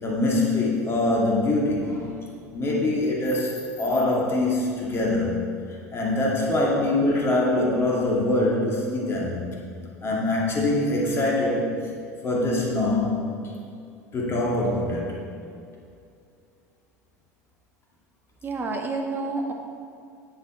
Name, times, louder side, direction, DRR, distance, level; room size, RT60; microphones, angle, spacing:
voice 1, 0.0-2.1 2.5-5.4 5.9-9.3 10.0-11.8 12.2-13.2 14.1-15.2, left 2 dB, 30° left, -3 dB, 2.2 m, -23 dB
voice 2, 18.4-19.5, right 3 dB, 25° right, 1 dB, 1.7 m, -29 dB
11.5 x 7.3 x 4.5 m, 2.5 s
figure-of-eight pair, 75°, 9 cm